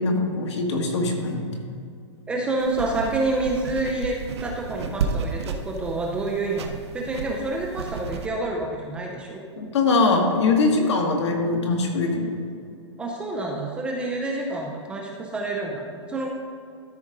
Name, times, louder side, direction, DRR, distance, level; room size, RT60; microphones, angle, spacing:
voice 1, 0.0-1.5 9.6-12.3, left 3 dB, 70° left, 2 dB, 1.7 m, -22 dB
voice 2, 2.3-9.4 13.0-16.3, right 2 dB, 5° right, -1 dB, 0.5 m, -28 dB
sound 1, 2.6-8.3, right 5 dB, 65° right, 0.8 m, -32 dB
13.0 x 5.0 x 3.8 m, 2.4 s
hypercardioid pair, 170°, 15 cm